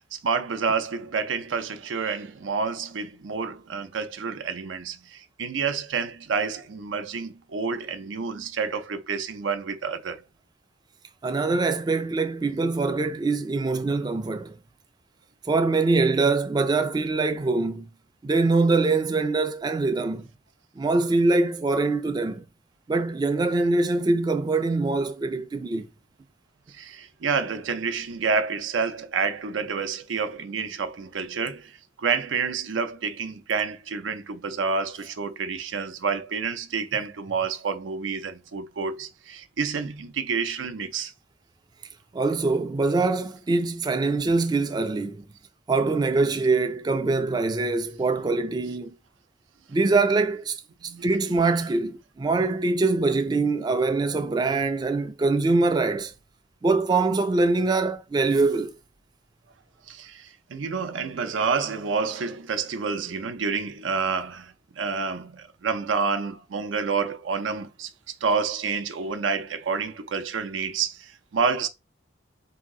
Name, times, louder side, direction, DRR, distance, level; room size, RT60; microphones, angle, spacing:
voice 1, 0.1-10.2 26.7-41.1 50.8-51.1 59.9-71.7, right 5 dB, 80° right, 0.5 m, -29 dB
voice 2, 11.2-14.6 15.4-17.9 18.2-20.3 20.8-22.4 22.9-25.9 42.1-45.2 45.7-48.9 49.7-50.6 51.0-56.1 56.6-58.8, right 3 dB, 20° right, 0.3 m, -23 dB
3.9 x 2.8 x 3.6 m
head